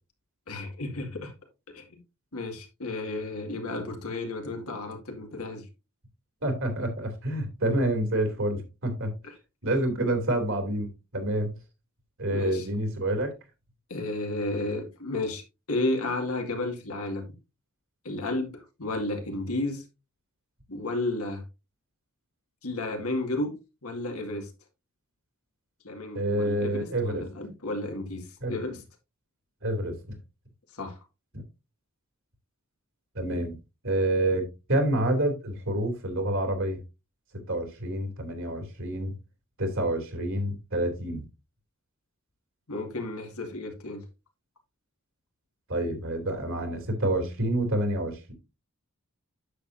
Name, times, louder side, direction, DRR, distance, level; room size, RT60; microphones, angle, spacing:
voice 1, 0.5-1.3 1.7-2.0 2.3-5.7 9.2-9.3 12.3-12.7 13.9-17.2 18.0-19.8 20.7-21.4 22.6-23.6 23.8-24.5 25.8-28.8 30.7-31.0 42.7-44.0, left 2 dB, 80° left, 2.1 m, -32 dB
voice 2, 6.4-9.1 9.6-11.6 12.2-13.3 26.1-27.2 28.4-28.5 29.6-30.2 31.3-31.4 33.1-33.6 33.8-36.8 37.5-39.1 39.6-41.2 45.7-48.3, right 1 dB, 65° right, 2.9 m, -28 dB
9.9 x 7.3 x 2.6 m
head